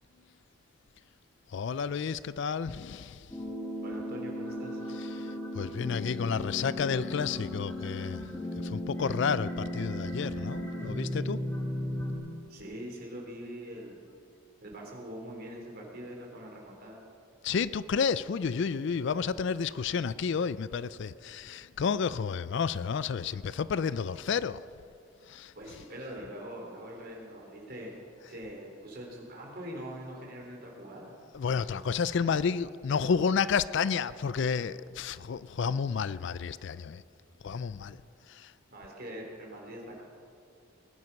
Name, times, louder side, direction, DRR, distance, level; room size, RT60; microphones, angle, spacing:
voice 1, 1.5-3.2 5.6-8.2 8.6-11.4 17.4-24.6 25.3-25.5 31.3-37.0 37.4-38.0 38.3-38.5, left 6 dB, 55° left, 17 dB, 0.4 m, -31 dB
sound 1, 3.3-12.1, left 1 dB, 10° left, 2.8 m, -36 dB
voice 2, 3.8-4.8 12.5-14.0 14.6-17.0 25.5-27.9 28.3-31.1 38.7-40.0, equal, 45° right, -1 dB, 3.4 m, -43 dB
20.0 x 11.0 x 5.9 m, 2.4 s
head